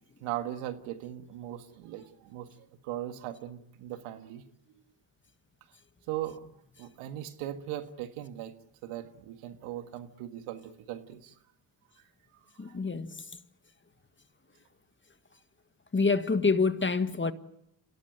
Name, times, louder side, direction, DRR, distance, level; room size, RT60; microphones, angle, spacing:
voice 1, 0.2-2.5 2.8-4.4 6.1-6.5 6.8-8.5 8.8-11.3 12.6-12.8, right 12 dB, 90° right, 1.8 m, -39 dB
voice 2, 12.6-13.1 15.9-17.3, left 4 dB, 25° left, 1.7 m, -26 dB
27.5 x 17.5 x 9.0 m
supercardioid pair, 65°, 49 cm